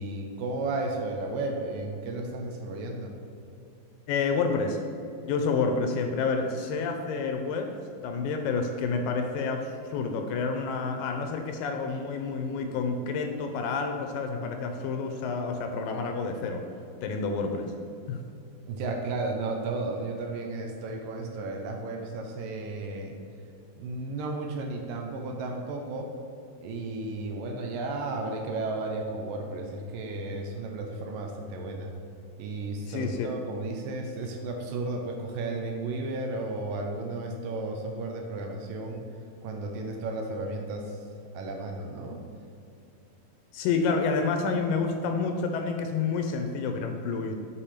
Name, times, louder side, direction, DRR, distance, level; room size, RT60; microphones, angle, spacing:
voice 1, 0.0-3.1 18.7-23.2 23.8-26.1 26.6-31.9 32.4-39.0 39.4-41.0 41.3-42.2, right 2 dB, 75° right, 3 dB, 2.2 m, -33 dB
voice 2, 4.1-4.8 5.2-7.7 8.0-16.6 17.0-17.7 18.1-18.2 32.9-33.3 43.5-47.4, left 4 dB, 80° left, 5 dB, 2.1 m, -29 dB
6.8 x 4.7 x 5.7 m, 2.6 s
omnidirectional pair, 4.2 m